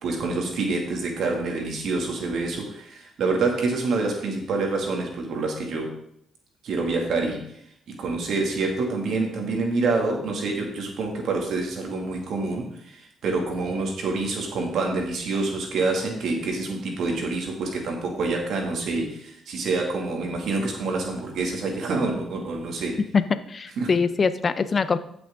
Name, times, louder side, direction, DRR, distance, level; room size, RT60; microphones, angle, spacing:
voice 1, 0.0-5.9 6.6-7.6 7.9-23.0 23.8-23.9, right 3 dB, 70° right, 1 dB, 2.2 m, -27 dB
voice 2, 23.1-25.0, left 5 dB, 40° left, 13 dB, 0.6 m, -23 dB
14.5 x 6.2 x 3.7 m, 0.72 s
cardioid pair, 90°, 0 cm